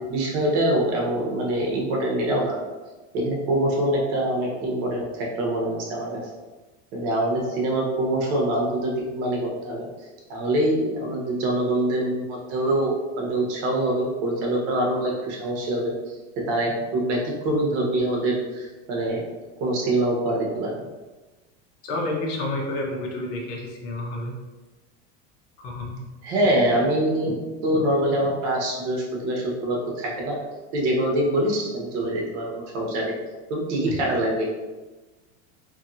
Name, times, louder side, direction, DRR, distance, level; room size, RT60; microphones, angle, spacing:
voice 1, 0.1-2.6 3.1-6.2 6.9-9.9 10.3-15.9 16.4-17.2 17.4-19.2 19.6-20.8 26.2-27.4 27.6-30.4 30.7-33.2 33.5-34.4, right 1 dB, 70° right, -2 dB, 1.1 m, -24 dB
voice 2, 21.8-24.3 25.6-26.0 33.9-34.0, left 2 dB, 55° left, -1 dB, 0.9 m, -30 dB
2.8 x 2.7 x 2.6 m, 1.2 s
supercardioid pair, 130°, 37 cm